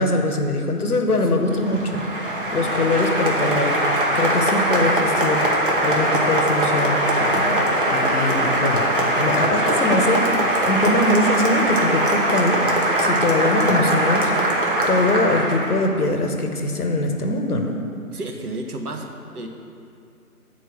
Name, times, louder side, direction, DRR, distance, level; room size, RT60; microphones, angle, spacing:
voice 1, 0.0-3.8 4.1-5.4 5.8-14.5 14.9-17.8, left 2 dB, 70° left, 4 dB, 1.1 m, -23 dB
voice 2, 1.1-1.5 18.1-19.5, right 2 dB, 75° right, 3 dB, 1.1 m, -32 dB
Applause, 1.4-15.9, right 1 dB, 35° right, 1.0 m, -21 dB
8.8 x 4.6 x 5.9 m, 2.4 s
figure-of-eight pair, 155°, 46 cm